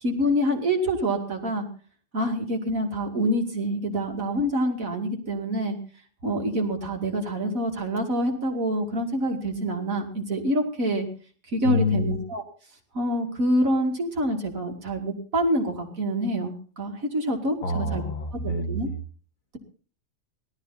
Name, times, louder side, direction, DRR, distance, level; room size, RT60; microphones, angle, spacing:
voice 1, 0.0-1.7 2.1-5.8 6.2-11.1 11.5-12.4 12.9-18.0 18.7-18.9, equal, 75° right, 3 dB, 2.9 m, -26 dB
voice 2, 11.6-12.2 17.6-18.8, left 2 dB, 75° left, 6 dB, 2.4 m, -26 dB
18.0 x 13.0 x 4.1 m, 0.41 s
omnidirectional pair, 1.4 m